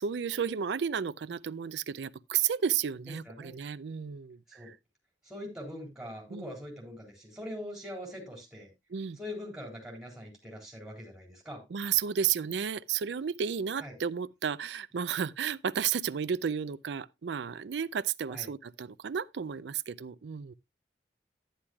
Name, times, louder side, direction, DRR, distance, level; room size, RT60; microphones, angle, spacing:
voice 1, 0.0-4.8 6.3-6.5 8.9-9.2 11.7-20.5, right 7 dB, 75° right, 0.4 m, -32 dB
voice 2, 3.2-3.5 4.5-4.7 5.2-8.7 9.2-11.6 13.8-13.9 18.3-18.5, left 1 dB, 5° right, 3.8 m, -42 dB
11.5 x 10.0 x 2.3 m
head